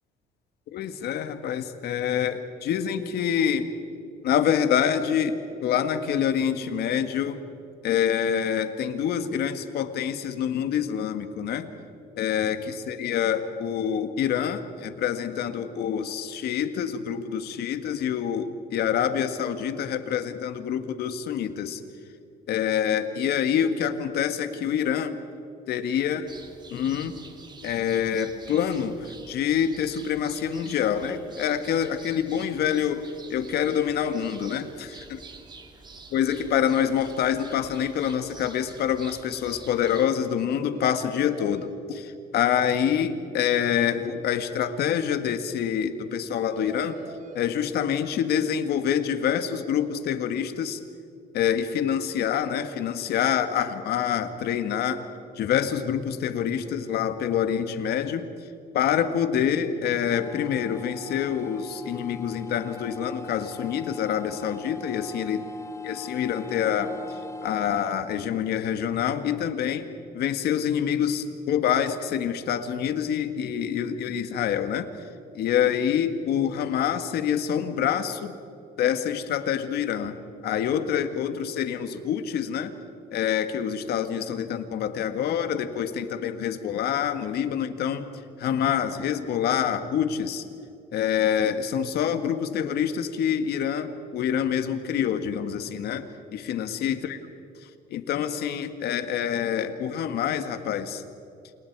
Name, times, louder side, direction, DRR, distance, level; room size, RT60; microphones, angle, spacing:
voice 1, 0.7-3.7 4.2-7.4 7.8-11.7 12.2-21.8 22.5-25.2 25.7-26.3 26.7-27.2 27.6-35.2 36.1-47.0 47.4-50.8 51.3-55.0 55.4-58.3 58.7-65.5 65.8-69.9 70.1-74.9 75.3-78.4 78.8-80.2 80.4-82.7 83.1-88.1 88.4-90.4 90.9-97.2 97.9-101.0, left 9 dB, 70° left, 9 dB, 1.8 m, -26 dB
sound 1, 26.3-40.1, right 3 dB, 25° right, 2.5 m, -48 dB
sound 2, 39.5-39.6 39.9-40.0 40.2-40.3 40.7-41.7 46.4-47.4, right 3 dB, 50° right, 2.4 m, -43 dB
sound 3, 60.1-67.9, left 3 dB, 20° left, 1.3 m, -40 dB
28.5 x 28.5 x 4.8 m, 2.5 s
cardioid pair, 110°, 17 cm